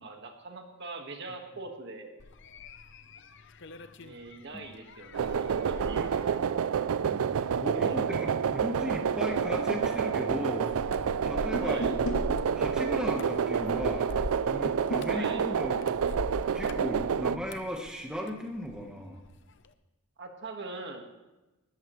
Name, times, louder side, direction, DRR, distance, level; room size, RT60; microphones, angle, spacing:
voice 1, 0.0-2.1 4.0-6.4 7.7-8.2 11.6-11.9 15.1-15.4 20.2-21.1, right 3 dB, 50° right, 4 dB, 1.7 m, -42 dB
sound 1, 2.2-18.9 19.2-19.7, left 2 dB, 55° left, 0.7 m, -43 dB
sound 2, 5.1-17.4, right 7 dB, 80° right, 0.4 m, -29 dB
voice 2, 7.0-7.3 7.6-12.2 12.5-14.1 14.4-15.8 16.5-19.2, equal, 5° right, 0 dB, 1.2 m, -36 dB
sound 3, 11.5-12.3 14.6-15.1, right 1 dB, 90° left, 2.4 m, -34 dB
19.5 x 13.5 x 3.2 m, 1.1 s
head